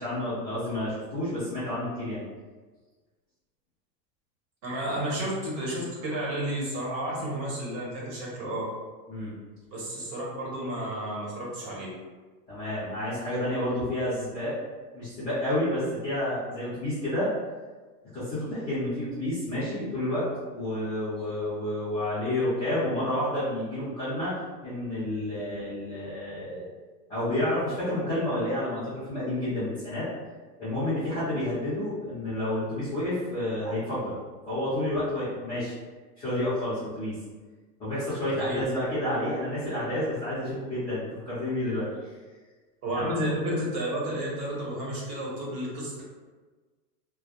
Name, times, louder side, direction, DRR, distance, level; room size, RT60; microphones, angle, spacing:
voice 1, 0.0-2.2 9.1-9.3 12.5-14.5 14.9-17.3 18.1-24.4 24.6-26.6 27.1-30.1 30.6-34.1 34.5-35.7 36.2-37.1 37.8-41.9 43.0-43.1, left 1 dB, 10° left, -16 dB, 0.4 m, -30 dB
voice 2, 4.6-8.6 9.7-11.9 38.4-38.6 42.8-46.0, right 1 dB, 40° right, -5 dB, 0.9 m, -31 dB
2.2 x 2.0 x 2.8 m, 1.3 s
supercardioid pair, 140°, 49 cm